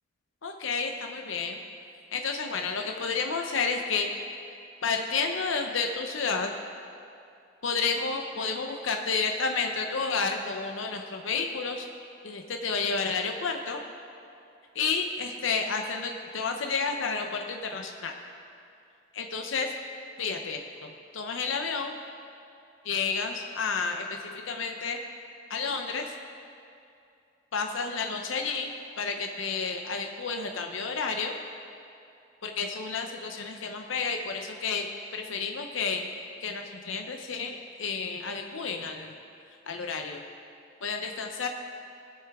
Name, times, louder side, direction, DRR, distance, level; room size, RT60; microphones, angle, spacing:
voice 1, 0.4-1.6 2.1-4.1 4.8-6.5 7.6-11.9 12.2-13.8 14.7-18.1 19.1-19.7 20.2-22.0 22.8-25.0 25.5-26.1 27.5-31.3 32.4-34.9 35.1-36.1 36.4-39.1 39.7-40.2 40.8-41.5, left 4 dB, 70° left, 4 dB, 0.7 m, -31 dB
19.0 x 7.8 x 3.6 m, 2.6 s
head